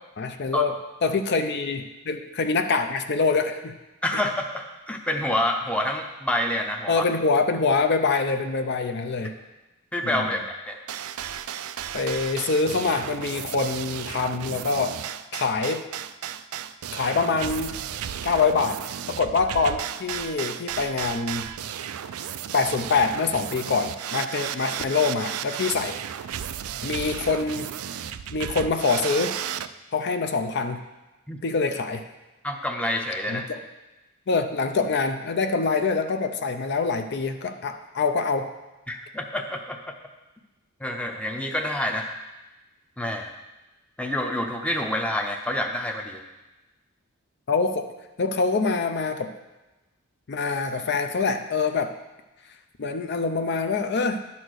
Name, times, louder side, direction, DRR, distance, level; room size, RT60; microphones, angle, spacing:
voice 1, 0.2-3.7 4.1-4.2 6.9-9.3 10.0-10.3 11.9-15.0 15.3-15.9 16.9-17.7 18.2-18.8 19.1-21.5 22.5-26.0 26.8-27.7 28.3-29.3 29.9-30.8 31.4-32.0 33.3-33.4 34.3-38.5 47.5-47.9 48.2-49.3 50.3-52.0 52.8-54.2, left 4 dB, 50° left, 7 dB, 0.5 m, -25 dB
voice 2, 4.0-7.0 9.2-9.3 9.9-10.4 10.7-10.8 31.3-31.4 32.4-33.5 38.9-39.9 40.8-42.1 43.0-43.3 44.0-46.2, left 1 dB, 5° left, 3 dB, 0.6 m, -27 dB
sound 1, 10.9-29.7, right 9 dB, 80° right, 0.4 m, -34 dB
11.0 x 4.2 x 6.3 m, 1.1 s
head